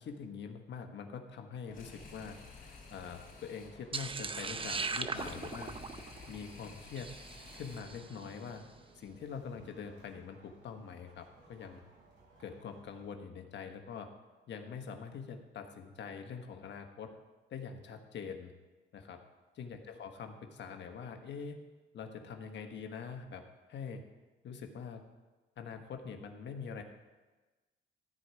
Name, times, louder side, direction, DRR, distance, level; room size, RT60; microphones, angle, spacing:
voice 1, 0.0-5.7 6.3-7.1 7.5-8.6 8.9-11.8 12.4-14.1 14.5-17.1 17.5-18.5 18.9-19.2 19.5-21.6 21.9-23.4 23.7-24.0 24.4-25.0 25.6-26.8, left 6 dB, 65° left, 5 dB, 1.4 m, -44 dB
sound 1, 1.6-8.1, left 3 dB, 40° left, 3.8 m, -52 dB
sound 2, 3.9-8.2, right 4 dB, 25° right, 0.6 m, -40 dB
sound 3, 7.3-13.1, right 2 dB, 80° right, 4.1 m, -61 dB
13.5 x 4.8 x 9.0 m, 1.2 s
cardioid pair, 90°, 20 cm